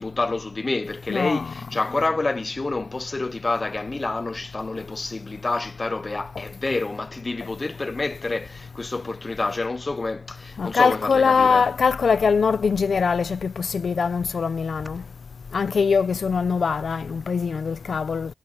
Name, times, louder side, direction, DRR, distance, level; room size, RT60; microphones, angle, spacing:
voice 1, 0.0-11.7 12.6-12.7, left 3 dB, 30° left, 0.8 m, -28 dB
voice 2, 1.1-1.5 10.6-15.0 15.5-18.3, left 5 dB, 60° left, 0.8 m, -22 dB
sound 1, 3.9-4.0 4.3-10.0 10.2-10.7 11.0-12.1 12.5-15.1, left 1 dB, 10° left, 4.9 m, -54 dB
cardioid pair, 85°, 0 cm